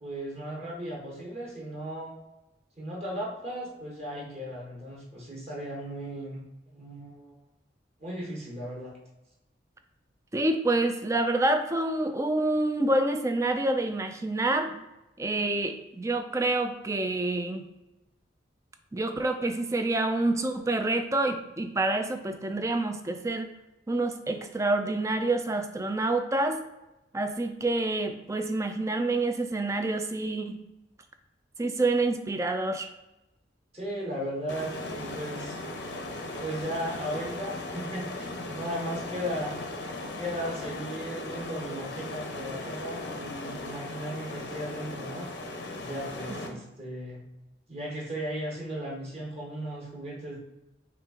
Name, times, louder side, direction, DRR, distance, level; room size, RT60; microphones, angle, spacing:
voice 1, 0.0-2.1 2.8-6.4 6.7-7.3 8.0-8.9 33.7-35.6 36.4-39.5 40.2-45.3 45.8-47.2 47.7-50.4, equal, 35° right, -3 dB, 1.1 m, -36 dB
voice 2, 10.3-14.8 15.2-17.6 18.9-23.5 23.9-26.6 27.1-30.6 31.6-32.9 46.3-46.6, right 2 dB, 15° right, 7 dB, 0.3 m, -27 dB
sound 1, 34.5-46.5, left 2 dB, 80° left, 0.8 m, -38 dB
5.7 x 2.4 x 3.7 m, 0.96 s
head